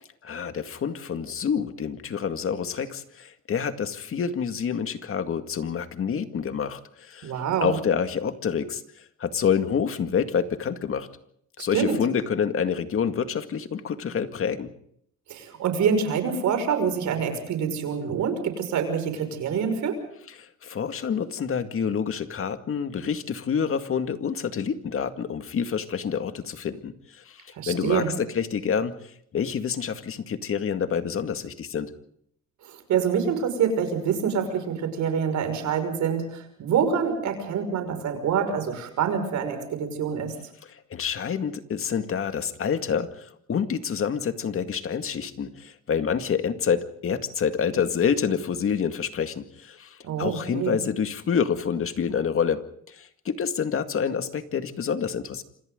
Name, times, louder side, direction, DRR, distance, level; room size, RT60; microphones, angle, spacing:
voice 1, 0.2-7.3 7.6-8.8 9.2-11.1 11.6-14.7 20.4-28.9 29.3-31.9 40.6-55.4, left 7 dB, 45° left, 8 dB, 2.1 m, -27 dB
voice 2, 7.2-7.8 11.6-12.0 15.3-20.0 27.6-28.1 32.9-40.3 50.0-50.8, right 7 dB, 70° right, 7 dB, 5.8 m, -26 dB
27.5 x 26.5 x 3.9 m, 0.68 s
cardioid pair, 120°, 30 cm